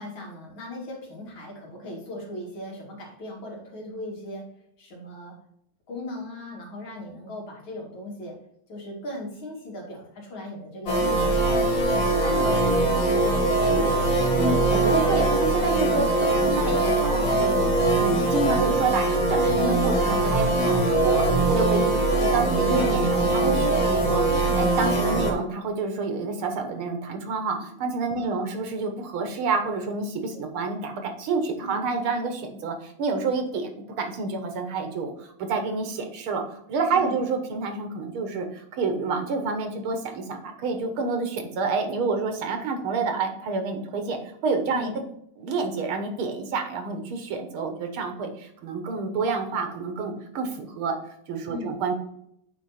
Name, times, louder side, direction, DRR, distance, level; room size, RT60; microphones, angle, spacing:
voice 1, 0.0-4.4 4.8-5.3 5.9-8.4 8.7-14.3 21.9-22.2 28.1-28.5 31.6-31.8 36.9-37.2 44.7-45.0 51.5-51.8, left 1 dB, 70° left, -2 dB, 3.0 m, -38 dB
sound 1, 10.9-25.3, right 2 dB, 50° left, 1.7 m, -22 dB
voice 2, 14.4-33.7 34.0-36.4 36.7-44.9 45.4-51.0 51.3-51.9, right 4 dB, 80° right, 6 dB, 2.0 m, -28 dB
8.8 x 4.2 x 4.2 m, 0.73 s
omnidirectional pair, 2.3 m